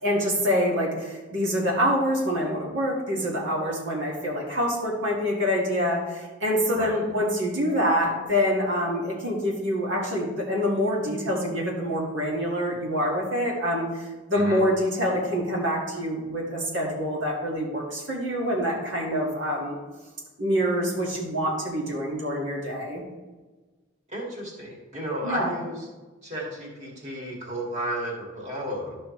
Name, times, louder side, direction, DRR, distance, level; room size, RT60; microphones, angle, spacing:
voice 1, 0.0-19.8 20.4-23.0 25.2-25.5, equal, 70° right, -2 dB, 2.2 m, -26 dB
voice 2, 24.1-25.9 26.2-29.0, right 1 dB, 35° right, -3 dB, 2.2 m, -33 dB
12.0 x 6.0 x 3.2 m, 1.3 s
head